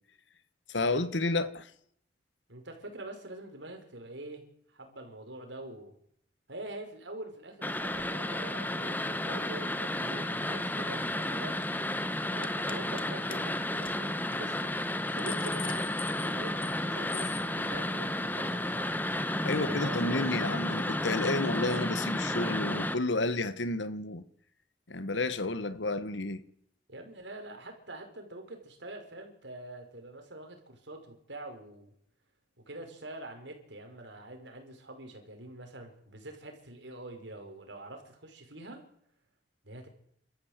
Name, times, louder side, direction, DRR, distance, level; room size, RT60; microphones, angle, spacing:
voice 1, 0.7-1.7 19.4-24.2 24.9-26.4, left 2 dB, 85° left, 1.5 m, -31 dB
voice 2, 2.5-4.4 4.7-5.9 6.5-11.6 12.3-14.7 15.1-19.0 19.6-20.2 26.9-31.9 32.6-38.9 39.6-39.9, right 1 dB, 80° right, 5.6 m, -45 dB
sound 1, 7.6-22.9, left 1 dB, 10° left, 1.1 m, -32 dB
sound 2, 11.0-11.2 11.5-11.8 12.4-13.0 13.3-13.4 13.8-13.9 14.3-14.4 14.9-16.8 17.1-17.5, left 8 dB, 30° left, 1.1 m, -43 dB
29.0 x 14.0 x 8.2 m
head